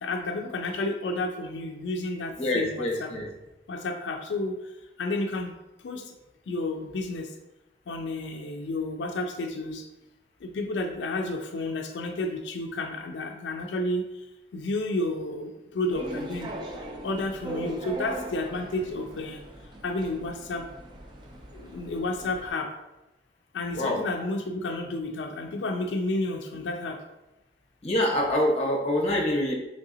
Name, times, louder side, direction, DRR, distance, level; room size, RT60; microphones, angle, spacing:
voice 1, 0.0-3.1 3.7-4.5 5.0-5.5 5.8-6.0 6.5-7.3 7.9-9.8 10.4-14.0 14.5-16.5 17.0-19.4 19.8-20.6 21.5-22.7 23.5-27.0, left 2 dB, 85° left, 4 dB, 0.4 m, -31 dB
voice 2, 2.4-3.3 23.7-24.0 27.8-29.5, left 1 dB, 35° left, -1 dB, 0.6 m, -25 dB
sound 1, 15.9-22.5, right 1 dB, 25° right, 0.4 m, -39 dB
3.6 x 3.2 x 2.7 m, 0.97 s
head